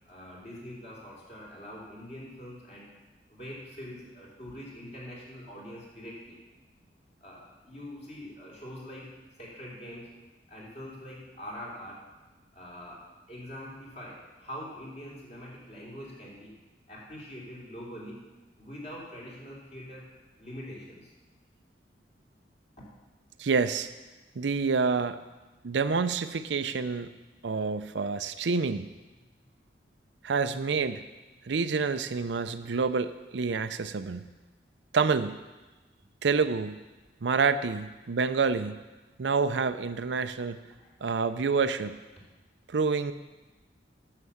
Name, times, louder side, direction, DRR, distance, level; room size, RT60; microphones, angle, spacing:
voice 1, 0.0-2.9 3.3-6.4 7.2-9.1 9.4-10.1 10.5-12.1 12.5-16.5 16.9-18.2 18.6-20.1 20.4-21.1 22.8-22.9 40.8-40.9, equal, 40° left, -5 dB, 3.0 m, -44 dB
voice 2, 23.4-23.9 24.4-25.2 25.6-27.1 27.4-28.9 30.2-31.0 31.5-34.3 34.9-35.4 36.2-36.8 37.2-38.8 39.2-40.6 41.0-42.0 42.7-43.1, right 5 dB, 85° right, 11 dB, 0.5 m, -28 dB
9.8 x 6.8 x 7.1 m, 1.2 s
head